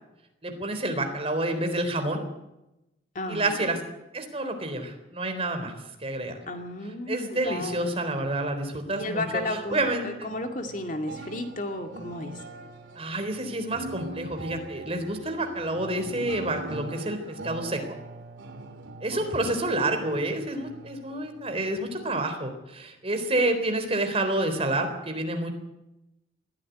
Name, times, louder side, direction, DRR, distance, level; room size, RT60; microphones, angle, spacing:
voice 1, 0.4-2.2 3.3-3.8 4.1-5.7 6.0-6.4 7.1-10.3 13.0-17.8 19.0-25.5, right 1 dB, 30° right, 6 dB, 3.8 m, -29 dB
voice 2, 3.1-3.8 6.5-7.9 8.9-12.4 19.1-19.2 19.6-19.7, left 1 dB, 45° left, 5 dB, 2.3 m, -33 dB
sound 1, 7.4-22.1, right 2 dB, 80° right, 3.1 m, -43 dB
21.0 x 15.5 x 9.6 m, 0.92 s
head